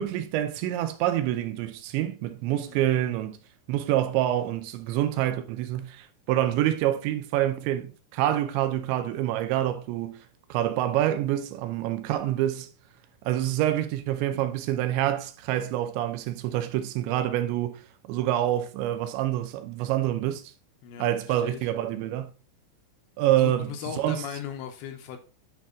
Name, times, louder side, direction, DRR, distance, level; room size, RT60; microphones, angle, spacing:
voice 1, 0.0-3.4 3.7-10.2 10.5-12.7 13.2-17.8 18.1-20.5 21.0-22.3 23.2-24.2, right 12 dB, 80° right, 2.8 m, -27 dB
voice 2, 20.8-21.7 23.4-25.2, left 9 dB, 80° left, 2.8 m, -38 dB
10.5 x 4.5 x 3.6 m
omnidirectional pair, 5.6 m